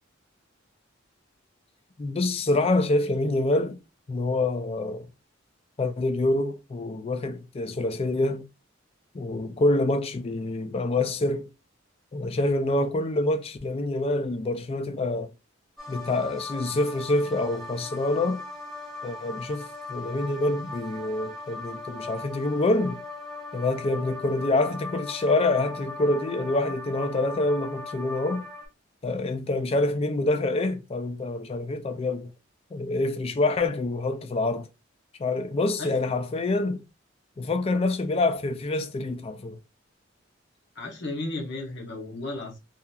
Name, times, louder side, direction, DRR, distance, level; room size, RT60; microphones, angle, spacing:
voice 1, 2.0-3.8 4.1-5.1 5.8-8.4 9.1-11.5 12.1-15.3 15.9-18.4 19.0-23.0 23.5-28.4 29.0-32.3 32.7-34.7 35.2-36.8 37.4-39.6, left 2 dB, 30° left, 0.3 m, -26 dB
sound 1, 15.8-28.7, left 3 dB, ahead, 0.7 m, -39 dB
voice 2, 40.8-42.6, left 2 dB, 60° left, 0.9 m, -34 dB
2.8 x 2.4 x 2.2 m
head